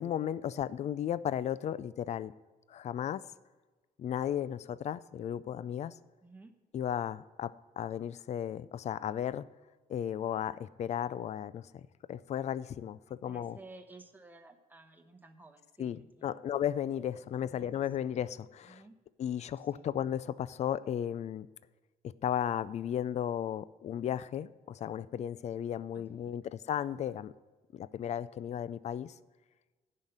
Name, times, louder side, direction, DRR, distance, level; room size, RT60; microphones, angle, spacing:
voice 1, 0.0-2.3 2.7-3.2 4.0-5.9 6.7-9.5 9.9-11.6 12.1-13.6 15.8-18.8 19.2-21.5 22.2-27.3 27.7-29.1, left 10 dB, 45° left, 17 dB, 0.4 m, -35 dB
voice 2, 6.2-6.5 13.2-16.5 17.1-18.1 18.6-19.0 19.7-19.9 25.9-26.4, right 3 dB, 10° right, 5 dB, 1.0 m, -55 dB
11.0 x 5.7 x 7.8 m, 1.3 s
cardioid pair, 130°, 16 cm